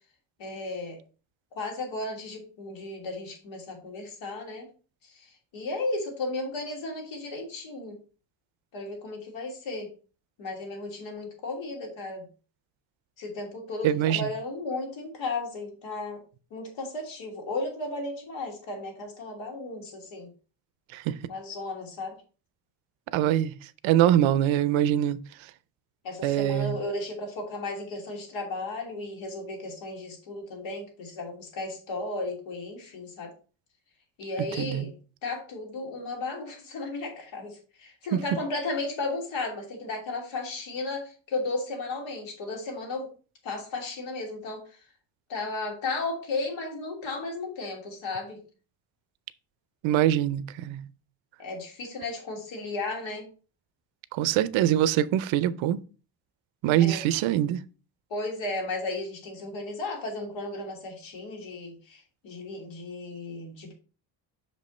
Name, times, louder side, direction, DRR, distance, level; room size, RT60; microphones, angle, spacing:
voice 1, 0.4-1.0 1.5-4.7 5.1-8.0 8.7-9.9 10.4-12.3 13.2-16.2 16.5-20.3 21.3-22.1 26.0-33.3 34.2-34.9 35.2-43.1 43.4-44.6 45.3-48.4 51.4-53.3 56.8-57.0 58.1-63.7, left 2 dB, 80° left, 2.9 m, -34 dB
voice 2, 13.8-14.3 20.9-21.2 23.1-23.5 23.8-25.2 26.2-26.8 34.6-34.9 38.1-38.2 49.8-50.8 54.1-55.8 56.6-57.6, right 12 dB, 90° right, 0.7 m, -23 dB
6.2 x 5.3 x 4.2 m
cardioid pair, 165°, 45 cm